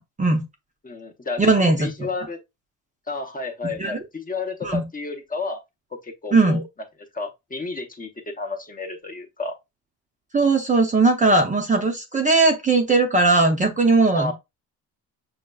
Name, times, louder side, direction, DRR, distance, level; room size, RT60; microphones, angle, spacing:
voice 1, 0.8-1.4 1.8-2.4 3.1-5.6 6.0-6.7 7.1-8.1 8.4-9.6 14.1-14.3, left 3 dB, 20° left, 0.7 m, -31 dB
voice 2, 1.4-2.1 3.6-4.0 4.6-4.8 6.3-6.6 10.3-14.3, right 3 dB, 20° right, 0.5 m, -19 dB
6.3 x 2.1 x 2.2 m
cardioid pair, 115°, 39 cm